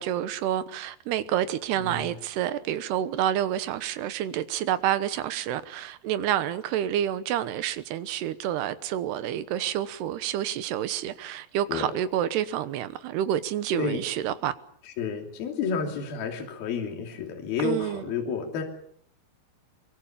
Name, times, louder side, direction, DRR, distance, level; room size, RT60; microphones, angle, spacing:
voice 1, 0.0-14.5 17.6-18.0, right 11 dB, 70° right, 2.9 m, -28 dB
voice 2, 1.8-2.1 11.7-11.9 13.7-14.0 14.9-18.6, left 5 dB, 55° left, 4.6 m, -31 dB
24.0 x 22.5 x 7.3 m
omnidirectional pair, 5.3 m